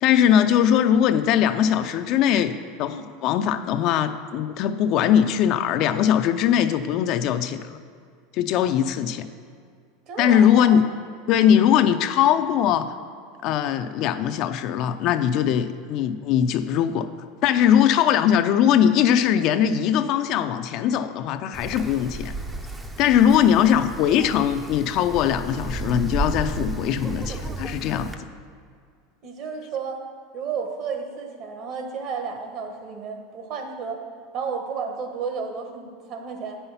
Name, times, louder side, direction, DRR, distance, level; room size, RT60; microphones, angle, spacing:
voice 1, 0.0-7.8 8.3-9.3 10.2-10.8 11.3-12.9 13.4-17.1 17.4-22.3 23.0-28.1, left 9 dB, 50° left, 9 dB, 0.4 m, -20 dB
voice 2, 10.1-10.8 24.1-24.3 29.2-30.0 30.3-34.0 34.3-36.6, right 5 dB, 50° right, 4 dB, 1.2 m, -32 dB
Wind, 21.5-28.1, right 2 dB, 10° right, 0.5 m, -33 dB
8.7 x 5.6 x 5.7 m, 2.1 s
supercardioid pair, 135°, 0 cm